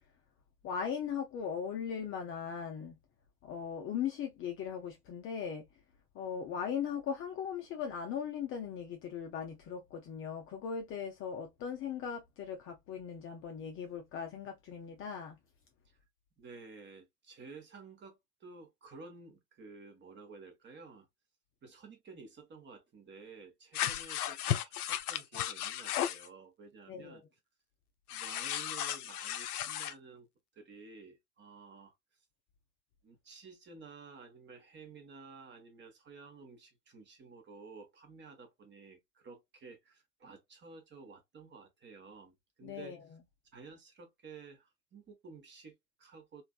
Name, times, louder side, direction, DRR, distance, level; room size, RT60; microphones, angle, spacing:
voice 1, 0.6-3.0 3.4-5.7 6.1-15.4 26.9-27.2 42.6-43.2, left 7 dB, 25° left, 0.6 m, -39 dB
voice 2, 16.4-21.1 21.6-27.2 28.1-30.3 30.5-31.9 33.0-43.0 43.5-46.4, right 4 dB, 25° right, 1.1 m, -53 dB
sound 1, 23.7-26.3 28.1-29.9, left 11 dB, 70° left, 0.6 m, -35 dB
3.2 x 2.6 x 2.3 m
figure-of-eight pair, 85°, 47 cm